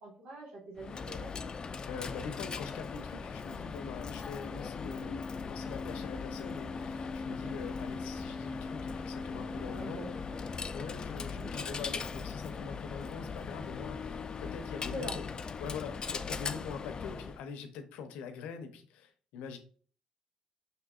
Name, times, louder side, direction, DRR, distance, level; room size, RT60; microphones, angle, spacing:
voice 1, 0.0-1.3 9.5-10.4 11.3-11.6 14.9-15.2, right 1 dB, 80° right, -4 dB, 1.4 m, -44 dB
Coin (dropping), 0.8-17.4, left 5 dB, 40° left, 0.4 m, -39 dB
voice 2, 1.9-10.1 10.7-15.3 15.6-19.6, left 6 dB, 85° left, 8 dB, 0.7 m, -44 dB
5.5 x 3.7 x 2.4 m, 0.43 s
supercardioid pair, 75°, 2 cm